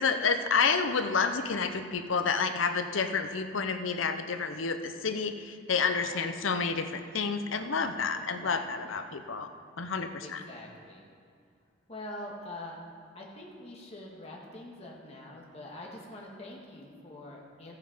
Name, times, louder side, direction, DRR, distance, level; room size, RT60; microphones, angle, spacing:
voice 1, 0.0-9.5 9.8-10.4, left 5 dB, 85° left, 8 dB, 0.8 m, -29 dB
voice 2, 5.8-6.5 8.1-9.0 10.2-11.0 11.9-12.8 13.1-17.8, left 1 dB, 30° left, -2 dB, 1.7 m, -45 dB
14.5 x 8.3 x 5.1 m, 2.2 s
head